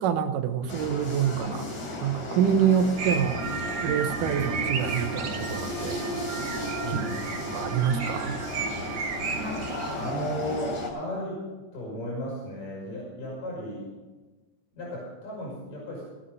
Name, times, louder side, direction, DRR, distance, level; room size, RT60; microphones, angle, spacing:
voice 1, 0.0-1.7 2.0-3.5 3.8-6.0 6.9-7.0 7.5-8.4, right 8 dB, 80° right, 8 dB, 2.5 m, -26 dB
sound 1, 0.7-10.9, left 1 dB, 60° left, 4.2 m, -34 dB
sound 2, 3.0-10.1, right 5 dB, 60° right, 1.3 m, -34 dB
voice 2, 6.8-7.2 9.9-13.9 14.8-16.0, equal, 80° left, -5 dB, 7.0 m, -35 dB
18.5 x 8.8 x 5.4 m, 1.2 s
omnidirectional pair, 3.8 m